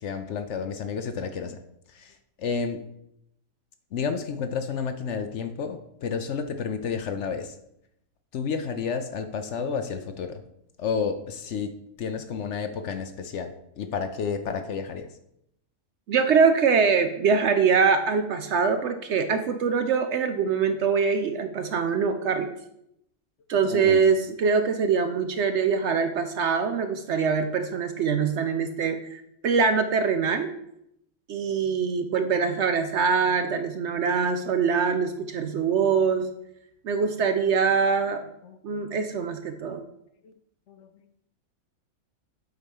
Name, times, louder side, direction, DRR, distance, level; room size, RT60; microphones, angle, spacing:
voice 1, 0.0-1.6 1.9-2.1 2.4-2.8 3.9-7.5 8.3-10.4 10.8-11.7 12.0-15.1 23.7-24.0 38.4-39.2 40.2-40.3 40.7-40.9, left 6 dB, 65° left, 8 dB, 0.8 m, -31 dB
voice 2, 16.1-22.5 23.5-30.5 31.3-36.3 36.8-38.2 38.6-39.8, right 5 dB, 65° right, 8 dB, 0.7 m, -23 dB
7.9 x 4.3 x 5.3 m, 0.78 s
omnidirectional pair, 1.5 m